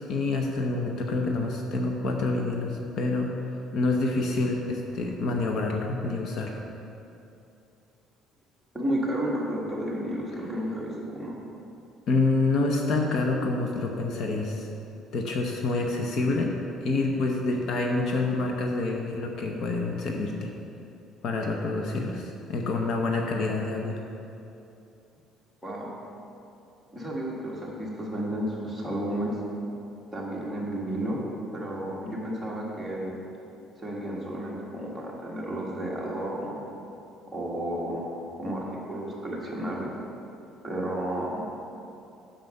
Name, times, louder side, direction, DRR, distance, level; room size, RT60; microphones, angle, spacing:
voice 1, 0.0-3.3 3.7-6.6 12.1-14.7 15.1-16.5 16.8-20.5 21.2-24.0, left 3 dB, 45° left, 1 dB, 0.8 m, -27 dB
voice 2, 8.7-11.3 25.6-25.9 26.9-29.4 30.1-31.2 31.5-33.2 33.8-36.6 37.3-38.0 38.4-39.9 40.6-41.4, right 1 dB, 5° right, -6 dB, 1.5 m, -32 dB
9.3 x 6.6 x 5.4 m, 2.8 s
cardioid pair, 175°, 0 cm